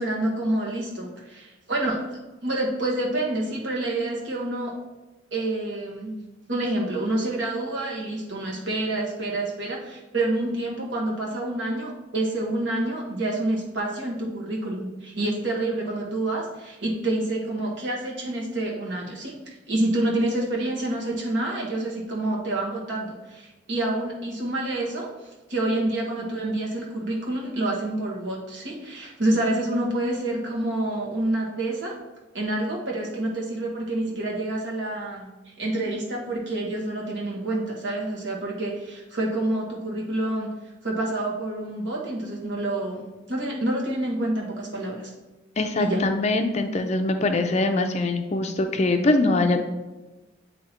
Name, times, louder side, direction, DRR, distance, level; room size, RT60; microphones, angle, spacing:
voice 1, 0.0-2.0 2.4-4.7 5.3-6.2 6.5-31.9 32.3-40.5 40.8-45.1 45.8-46.0, right 1 dB, 65° right, -2 dB, 1.4 m, -28 dB
voice 2, 45.6-49.6, left 2 dB, 35° left, 6 dB, 0.4 m, -23 dB
8.4 x 2.8 x 4.3 m, 1.1 s
head